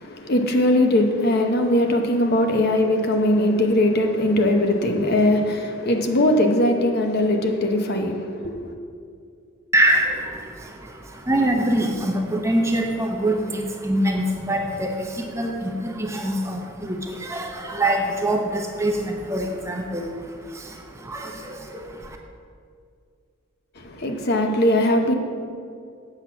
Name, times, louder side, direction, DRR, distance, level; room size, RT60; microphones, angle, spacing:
voice 1, 0.0-8.7 23.8-25.1, left 1 dB, 45° left, 0.8 m, -20 dB
voice 2, 9.7-22.2, right 1 dB, 15° right, 0.7 m, -25 dB
8.0 x 6.0 x 7.0 m
head